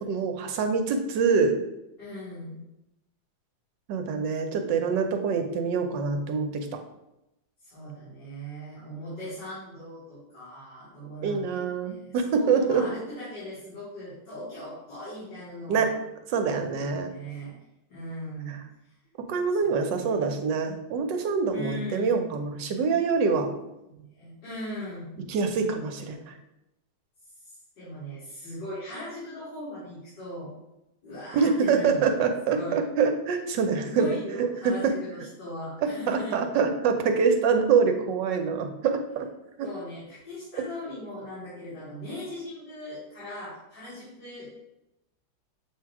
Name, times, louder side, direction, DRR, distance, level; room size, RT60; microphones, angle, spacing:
voice 1, 0.1-1.5 3.9-6.7 11.2-12.8 15.7-15.9 16.3-17.1 18.5-18.6 19.3-23.5 25.3-26.3 31.3-34.9 35.8-39.3 39.6-39.7, right 5 dB, 75° right, 5 dB, 1.4 m, -25 dB
voice 2, 2.0-2.6 7.6-11.9 12.4-15.9 16.4-17.5 17.9-18.6 19.8-20.3 21.5-22.3 23.8-25.3 27.8-30.5 31.0-32.1 32.4-32.8 33.8-36.4 39.6-44.5, equal, 65° left, -11 dB, 3.0 m, -39 dB
7.3 x 2.8 x 4.7 m, 0.89 s
omnidirectional pair, 2.0 m